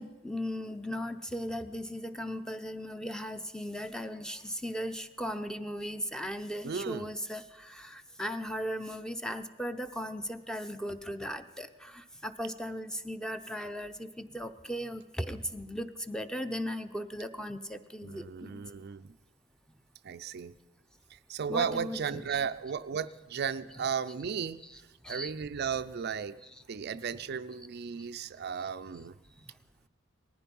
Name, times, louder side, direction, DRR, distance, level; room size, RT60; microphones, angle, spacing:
voice 1, 0.0-18.6 21.5-22.3 25.0-25.3 29.4-29.5, equal, 5° left, 9 dB, 0.6 m, -37 dB
voice 2, 6.6-7.1 18.0-19.2 20.0-20.5 21.1-26.4 26.7-29.2, right 6 dB, 55° right, 12 dB, 0.4 m, -35 dB
18.5 x 14.5 x 5.3 m, 1.1 s
head